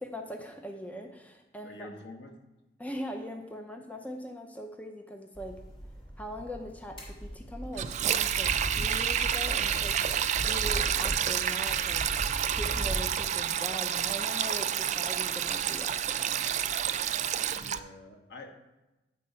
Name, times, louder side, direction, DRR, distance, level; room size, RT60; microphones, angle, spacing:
voice 1, 0.0-1.9 2.8-5.6 6.2-10.0 10.4-12.1 12.5-16.4, equal, 10° left, 4 dB, 0.5 m, -41 dB
voice 2, 1.6-2.3 17.5-18.5, left 2 dB, 80° left, 2 dB, 1.3 m, -46 dB
sound 1, 5.3-13.2, right 1 dB, 30° left, 2.8 m, -38 dB
Sink (filling or washing), 7.7-17.8, right 9 dB, 40° right, 0.3 m, -29 dB
8.9 x 4.2 x 5.5 m, 1.0 s
head